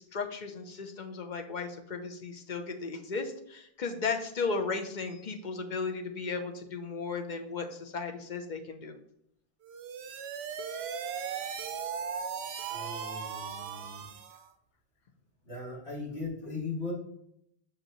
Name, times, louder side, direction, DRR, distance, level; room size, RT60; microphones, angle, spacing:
voice 1, 0.0-9.0, left 4 dB, 50° left, 5 dB, 0.8 m, -35 dB
sound 1, 9.6-14.5, right 7 dB, 90° right, 0.9 m, -37 dB
voice 2, 12.7-14.1 15.4-16.9, left 3 dB, 85° left, -7 dB, 3.0 m, -38 dB
6.3 x 5.0 x 3.0 m, 0.72 s
omnidirectional pair, 1.0 m